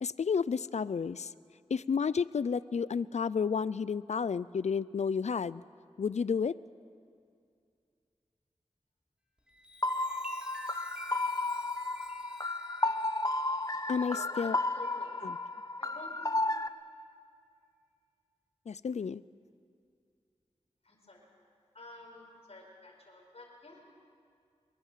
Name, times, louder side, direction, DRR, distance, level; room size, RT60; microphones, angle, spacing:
voice 1, 0.0-1.3 1.7-5.6 6.0-6.6 13.9-14.6 15.2-15.4 18.7-19.2, left 6 dB, 80° left, 18 dB, 0.5 m, -31 dB
Chime, 9.4-15.4 15.9-16.2, left 2 dB, 10° right, 4.1 m, -51 dB
sound 1, 9.8-16.7, left 2 dB, 30° left, 0.9 m, -33 dB
voice 2, 13.9-15.1 15.8-16.3 20.8-21.3 21.7-23.8, left 2 dB, 65° left, -2 dB, 4.7 m, -48 dB
23.0 x 22.0 x 7.5 m, 2.3 s
cardioid pair, 40°, 12 cm